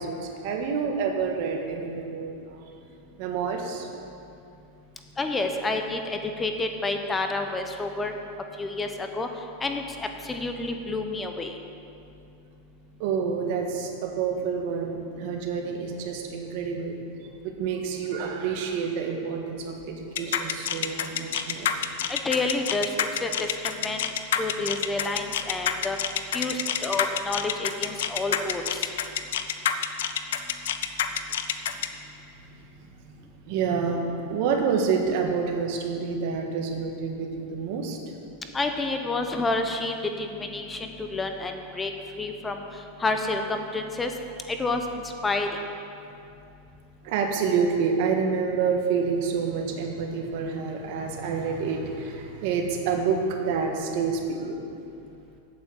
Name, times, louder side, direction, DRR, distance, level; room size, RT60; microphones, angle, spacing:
voice 1, 0.0-2.7 3.2-3.9 5.4-5.5 13.0-17.0 17.4-21.7 32.5-32.9 33.5-38.0 47.0-54.5, right 5 dB, 60° right, 2 dB, 1.5 m, -28 dB
voice 2, 5.2-8.1 8.6-9.3 9.6-11.5 22.1-24.1 24.4-26.0 26.3-28.8 38.5-41.9 42.2-42.6 43.0-44.1 44.5-45.5, left 2 dB, 15° left, 5 dB, 0.8 m, -29 dB
sound 1, 20.2-31.9, left 9 dB, 80° left, 0.6 m, -27 dB
8.5 x 8.3 x 7.3 m, 2.6 s
supercardioid pair, 125°, 0 cm